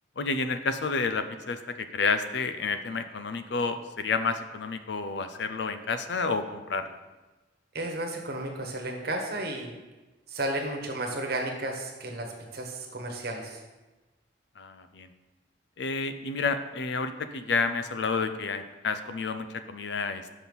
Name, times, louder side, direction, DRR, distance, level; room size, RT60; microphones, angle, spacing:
voice 1, 0.2-7.0 14.6-15.1 15.8-20.2, left 4 dB, 65° left, 10 dB, 0.5 m, -30 dB
voice 2, 7.7-9.7 10.3-13.6, right 1 dB, 55° right, 2 dB, 1.2 m, -33 dB
6.2 x 5.8 x 5.4 m, 1.1 s
head